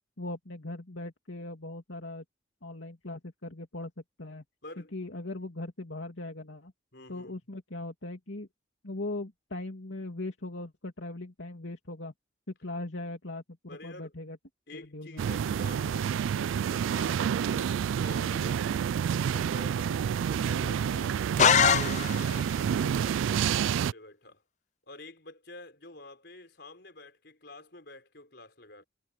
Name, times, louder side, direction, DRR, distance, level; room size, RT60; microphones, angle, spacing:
voice 1, 0.2-2.2 2.6-3.9 4.2-4.4 4.9-6.7 7.1-8.5 8.8-12.1 12.6-14.4 14.7-15.2, left 2 dB, 75° left, 2.7 m, -39 dB
voice 2, 4.6-4.9 6.9-7.4 13.7-14.1 14.7-21.2 21.7-24.4 24.9-28.8, left 2 dB, 55° left, 5.2 m, -48 dB
sound 1, 15.2-23.9, right 8 dB, 85° right, 0.3 m, -29 dB
sound 2, 21.4-22.5, left 7 dB, 35° left, 0.5 m, -23 dB
head